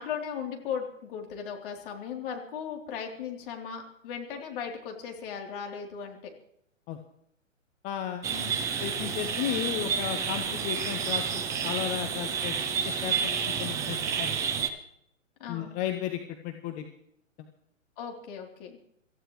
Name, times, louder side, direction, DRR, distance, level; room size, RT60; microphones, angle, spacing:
voice 1, 0.0-6.2 8.3-8.6 15.4-15.8 18.0-18.8, left 7 dB, 40° left, 1 dB, 3.5 m, -37 dB
voice 2, 7.8-8.2 8.8-12.6 12.8-14.3 15.5-16.9, left 11 dB, 20° left, 6 dB, 0.9 m, -34 dB
sound 1, 8.2-14.7, right 7 dB, 10° right, 0.5 m, -30 dB
26.5 x 14.5 x 3.2 m, 0.73 s
figure-of-eight pair, 130°, 39 cm